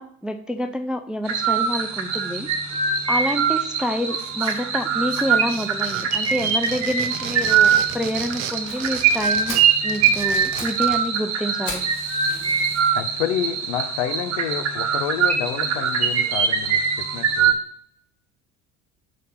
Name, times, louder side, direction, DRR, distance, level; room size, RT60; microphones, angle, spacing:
voice 1, 0.0-2.5 3.1-11.8, left 1 dB, ahead, 9 dB, 0.4 m, -28 dB
sound 1, 1.3-17.5, right 7 dB, 45° right, 1.3 m, -22 dB
sound 2, 4.2-4.8 5.1-11.1, right 8 dB, 70° right, 0.8 m, -34 dB
Fire, 8.7-8.8 9.2-9.3 9.5-9.8 10.3-10.8 11.0-11.1 11.6-13.0 13.6-13.7 14.2-14.3 14.6-14.7 15.0-15.1, left 2 dB, 50° left, 3.2 m, -36 dB
voice 2, 12.9-16.8 17.1-17.5, left 10 dB, 65° left, 9 dB, 0.8 m, -28 dB
5.1 x 4.1 x 5.8 m, 0.62 s
hypercardioid pair, 65°, 38 cm